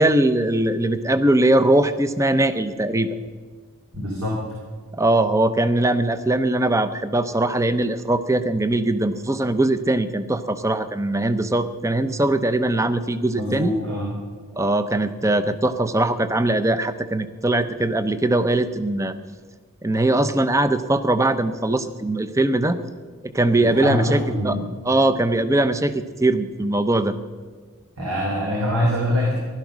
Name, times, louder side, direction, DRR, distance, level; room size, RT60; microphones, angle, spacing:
voice 1, 0.0-3.1 4.9-13.7 14.6-19.2 19.8-22.8 23.2-24.2 24.4-24.6 24.9-27.2, right 1 dB, 15° right, 12 dB, 0.6 m, -21 dB
voice 2, 3.9-4.4 13.3-14.1 23.6-24.6 28.0-29.4, left 1 dB, 80° right, -2 dB, 3.2 m, -24 dB
15.5 x 12.0 x 6.2 m, 1.5 s
head